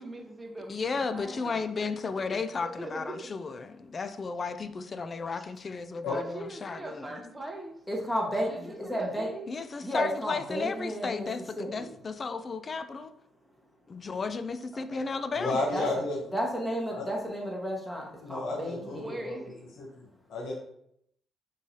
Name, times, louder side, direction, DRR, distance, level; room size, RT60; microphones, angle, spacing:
voice 1, 0.0-1.6 2.3-3.2 5.4-5.5 6.1-7.8 8.5-9.5 14.7-15.0 18.8-19.6, right 1 dB, 15° right, 2 dB, 0.8 m, -41 dB
voice 2, 0.7-7.2 9.5-13.1 13.9-15.6, left 4 dB, 40° left, 11 dB, 0.4 m, -34 dB
voice 3, 7.9-9.3 9.8-11.3 11.6-11.9 15.7-15.9 16.3-19.3, equal, 10° left, -2 dB, 1.4 m, -32 dB
voice 4, 15.4-16.2 16.9-17.0 18.2-19.5 19.8-20.5, left 2 dB, 75° left, -1 dB, 1.0 m, -33 dB
5.2 x 3.2 x 2.8 m, 0.73 s
cardioid pair, 90°, 0 cm